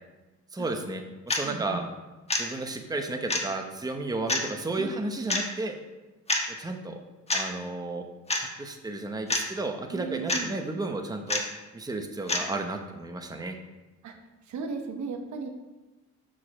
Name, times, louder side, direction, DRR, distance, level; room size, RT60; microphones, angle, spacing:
voice 1, 0.5-1.8 2.3-5.8 6.6-7.0 7.3-8.1 8.4-11.4 11.7-13.6, right 2 dB, 10° right, 4 dB, 0.9 m, -33 dB
sound 1, 1.3-1.5 2.3-2.4 3.3-3.4 4.3-4.5 5.3-5.4 6.3-6.5 7.3-7.4 8.3-8.5 9.3-9.4 10.3-10.4 11.3-11.4 12.3-12.4, left 2 dB, 20° left, 1.2 m, -26 dB
voice 2, 1.4-1.8 4.8-5.0 9.9-10.6 14.0-14.1 14.4-15.5, right 4 dB, 75° right, 5 dB, 1.1 m, -36 dB
6.6 x 4.9 x 6.1 m, 1.1 s
cardioid pair, 90°, 30 cm